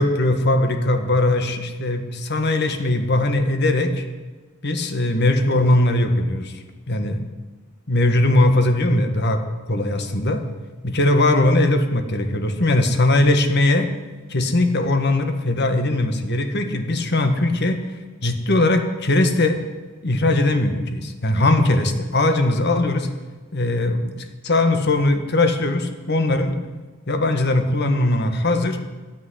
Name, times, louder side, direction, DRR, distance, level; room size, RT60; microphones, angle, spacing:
voice 1, 0.0-4.1 4.6-7.2 7.9-9.4 9.7-10.4 10.8-13.9 14.3-17.8 18.2-19.6 20.0-23.1 23.5-26.6 27.1-28.8, left 2 dB, 55° left, 7 dB, 1.7 m, -20 dB
12.0 x 10.0 x 10.0 m, 1.3 s
head